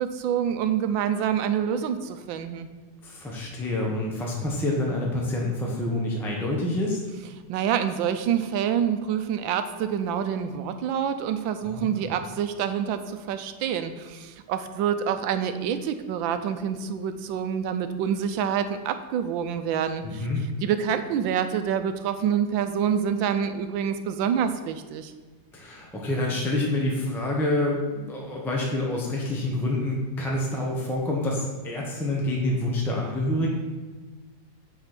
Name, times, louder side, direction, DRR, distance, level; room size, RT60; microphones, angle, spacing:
voice 1, 0.0-2.7 7.5-20.3 20.6-25.1, right 8 dB, 85° right, 9 dB, 1.3 m, -27 dB
voice 2, 3.0-7.0 11.6-12.1 20.0-20.4 25.5-33.5, left 1 dB, ahead, -2 dB, 0.9 m, -27 dB
8.1 x 4.3 x 6.0 m, 1.3 s
omnidirectional pair, 2.1 m